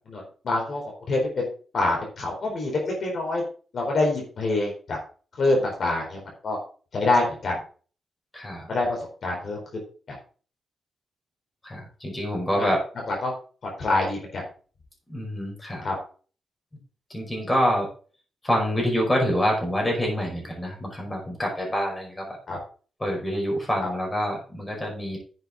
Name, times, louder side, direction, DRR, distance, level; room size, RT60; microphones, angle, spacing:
voice 1, 0.1-1.5 1.7-3.4 3.7-5.0 5.4-6.6 6.9-7.6 8.7-9.8 10.1-10.2 12.5-12.7 13.1-13.3 13.6-14.4 15.8-15.9 22.5-22.6, left 2 dB, 50° left, -1 dB, 4.2 m, -26 dB
voice 2, 8.3-8.7 11.6-12.8 15.1-15.9 17.1-17.9 18.4-22.4 23.0-25.2, equal, 15° left, -1 dB, 5.3 m, -26 dB
10.5 x 8.0 x 3.8 m, 0.39 s
wide cardioid pair, 125°, 0 cm